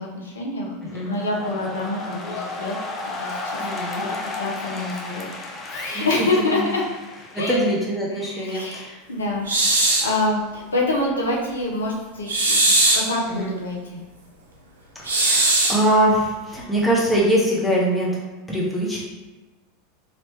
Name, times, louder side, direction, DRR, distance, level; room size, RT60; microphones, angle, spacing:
voice 1, 0.0-2.7 3.2-3.7 4.0-5.3 5.7-6.8 7.3-7.6 8.1-14.0, left 2 dB, 75° left, -2 dB, 0.6 m, -27 dB
sound 1, 0.9-7.8, left 3 dB, 30° left, 0.5 m, -33 dB
voice 2, 3.6-4.0 5.9-6.6 7.3-9.0 13.3-13.5 15.0-18.1 18.5-19.0, right 1 dB, 5° left, -5 dB, 1.0 m, -23 dB
sound 2, 9.5-10.1 12.3-13.1 15.1-15.9, right 2 dB, 75° right, 0.6 m, -19 dB
2.9 x 2.9 x 3.1 m, 1.1 s
figure-of-eight pair, 80°, 0 cm